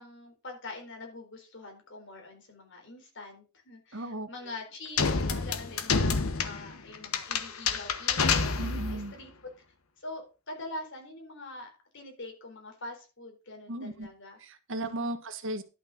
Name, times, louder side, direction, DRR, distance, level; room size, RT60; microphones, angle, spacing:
voice 1, 0.0-9.5 10.0-14.4 14.8-15.2, left 2 dB, 60° left, 3 dB, 4.0 m, -44 dB
voice 2, 3.9-4.3 8.6-9.1 13.7-14.1 14.4-15.6, right 1 dB, 65° right, 9 dB, 1.4 m, -36 dB
sound 1, 5.0-9.1, left 5 dB, 85° left, 1.2 m, -28 dB
11.5 x 6.3 x 5.2 m, 0.32 s
head